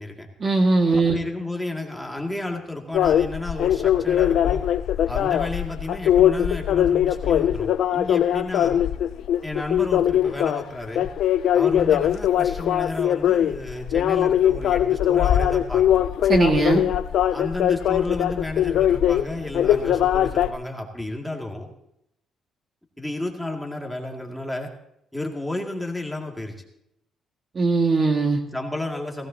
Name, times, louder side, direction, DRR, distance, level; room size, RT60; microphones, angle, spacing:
voice 1, 0.4-1.2 16.3-16.9 27.5-28.4, right 3 dB, 40° right, 3 dB, 1.9 m, -19 dB
voice 2, 0.9-4.6 5.1-8.8 9.4-11.1 11.5-16.0 17.3-21.7 23.0-24.7 25.1-26.5 28.5-29.3, left 2 dB, 5° left, 1 dB, 2.3 m, -32 dB
sound 1, 2.9-20.5, left 10 dB, 75° left, 0.5 m, -21 dB
18.0 x 16.0 x 2.9 m, 0.79 s
cardioid pair, 90°, 0 cm